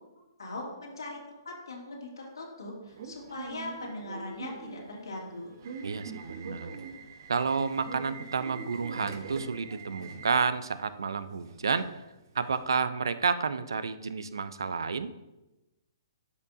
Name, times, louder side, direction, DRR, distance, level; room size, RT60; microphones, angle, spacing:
voice 1, 0.4-5.6, left 2 dB, 75° left, -2 dB, 2.5 m, -40 dB
Subway metro underground / Alarm, 2.9-12.7, right 4 dB, 55° right, 1.0 m, -44 dB
voice 2, 5.8-6.7 7.3-12.0 12.3-15.1, right 5 dB, 70° right, 14 dB, 0.5 m, -30 dB
12.0 x 5.7 x 2.7 m, 1.0 s
figure-of-eight pair, 125°, 2 cm